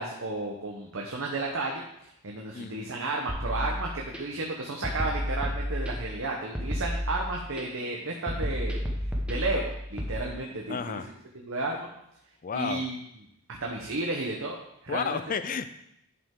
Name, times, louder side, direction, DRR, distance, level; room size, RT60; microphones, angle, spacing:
voice 1, 0.0-1.8 2.2-8.8 9.2-11.0 11.3-11.9 12.5-13.0 13.6-14.6 14.8-15.2, right 2 dB, 60° right, 0 dB, 1.0 m, -32 dB
voice 2, 2.5-2.9 10.7-11.1 12.4-12.9 14.9-15.7, left 6 dB, 40° left, 11 dB, 0.4 m, -32 dB
sound 1, 3.3-4.2 4.8-6.2 6.5-7.6 8.3-10.1, equal, 5° right, 1.0 m, -31 dB
10.5 x 5.5 x 3.7 m, 0.79 s
head